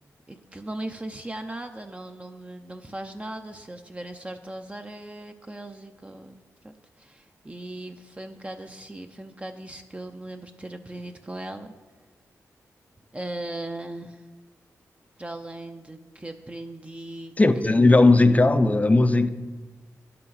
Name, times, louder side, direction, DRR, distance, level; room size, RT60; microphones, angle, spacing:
voice 1, 0.3-11.7 13.1-14.2 15.2-17.3 17.6-18.0, right 1 dB, 20° right, 5 dB, 0.6 m, -38 dB
voice 2, 17.4-19.3, left 2 dB, 25° left, 11 dB, 0.5 m, -17 dB
10.5 x 6.0 x 4.8 m, 1.3 s
cardioid pair, 60°, 6 cm